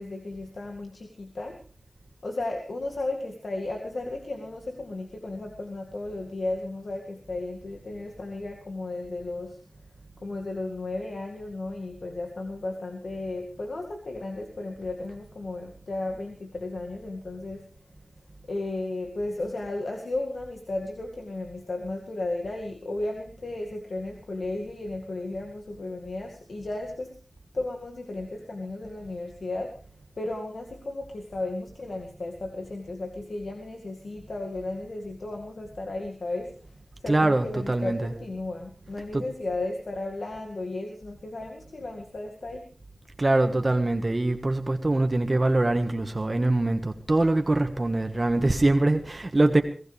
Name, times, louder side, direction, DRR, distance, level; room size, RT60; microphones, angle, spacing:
voice 1, 0.0-1.6 2.2-9.6 10.2-17.6 18.5-27.1 27.5-29.8 30.2-42.6, left 2 dB, 80° left, 1 dB, 2.1 m, -34 dB
voice 2, 37.1-38.1 39.1-39.2 43.2-49.6, right 2 dB, 40° right, 6 dB, 1.5 m, -23 dB
22.5 x 17.5 x 3.4 m, 0.41 s
wide cardioid pair, 55°, 0 cm